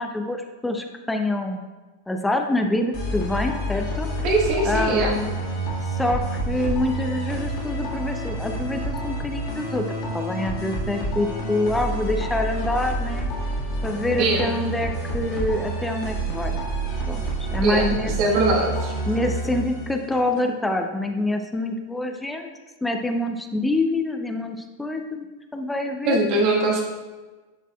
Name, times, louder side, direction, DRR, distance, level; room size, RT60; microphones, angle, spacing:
voice 1, 0.0-1.7 2.1-4.1 4.6-5.3 5.9-13.3 13.8-16.6 17.1-18.4 19.1-22.5 22.8-25.3 25.5-26.2, left 2 dB, 5° left, 5 dB, 0.5 m, -26 dB
sound 1, 2.9-20.4, right 1 dB, 45° left, 1.8 m, -28 dB
voice 2, 4.2-5.1 14.2-14.5 17.6-18.9 26.0-26.8, right 2 dB, 40° right, 0 dB, 1.2 m, -21 dB
11.0 x 4.1 x 2.3 m, 1.2 s
figure-of-eight pair, 90°, 0 cm